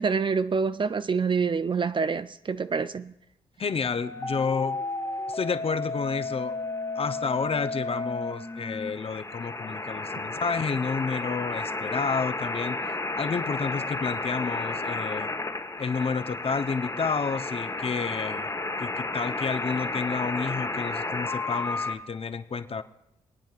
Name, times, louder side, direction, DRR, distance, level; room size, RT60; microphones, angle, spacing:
voice 1, 0.0-3.1, right 5 dB, 35° right, 0.4 m, -26 dB
voice 2, 3.6-4.8 5.3-6.6 7.0-12.8 13.2-15.3 15.8-18.5 18.8-22.8, left 5 dB, 45° left, 0.7 m, -30 dB
sound 1, 3.8-22.0, left 2 dB, 25° left, 1.1 m, -32 dB
24.5 x 9.0 x 2.4 m
supercardioid pair, 45°, 14 cm